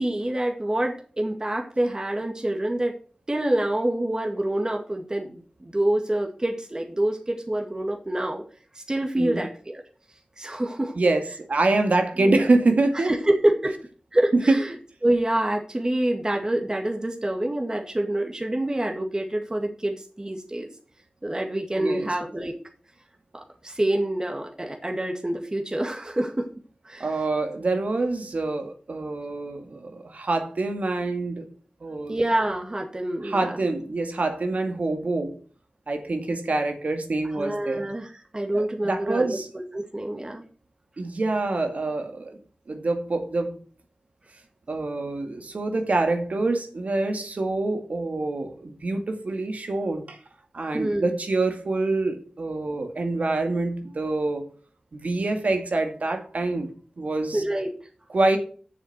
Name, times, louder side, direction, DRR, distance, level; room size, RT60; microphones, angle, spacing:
voice 1, 0.0-2.9 3.3-8.4 8.7-9.8 10.4-10.9 12.2-12.5 12.9-13.8 14.1-14.7 15.0-20.7 21.2-22.6 23.3-26.5 26.8-27.1 32.1-33.6 37.3-40.4 50.7-51.1 57.3-57.7, right 1 dB, 30° right, 2 dB, 1.9 m, -26 dB
voice 2, 11.0-13.1 14.3-14.6 21.8-22.1 27.0-31.5 31.8-32.2 33.2-35.4 35.9-37.8 38.5-39.5 41.0-42.4 42.7-43.6 44.7-50.2 50.5-54.5 54.9-57.4 58.1-58.4, right 2 dB, 70° right, 5 dB, 2.1 m, -26 dB
7.2 x 7.0 x 7.9 m, 0.42 s
wide cardioid pair, 50°, 2 cm